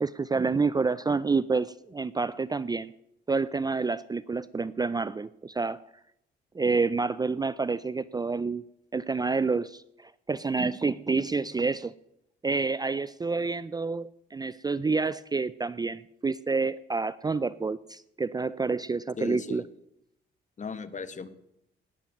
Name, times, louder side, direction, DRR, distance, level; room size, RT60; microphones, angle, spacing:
voice 1, 0.0-2.9 3.3-5.8 6.5-8.6 8.9-11.9 12.4-19.6, right 4 dB, 20° right, 18 dB, 0.5 m, -28 dB
voice 2, 19.2-19.7 20.6-21.3, left 5 dB, 40° left, 13 dB, 1.4 m, -37 dB
18.5 x 7.4 x 9.1 m, 0.80 s
cardioid pair, 90°, 20 cm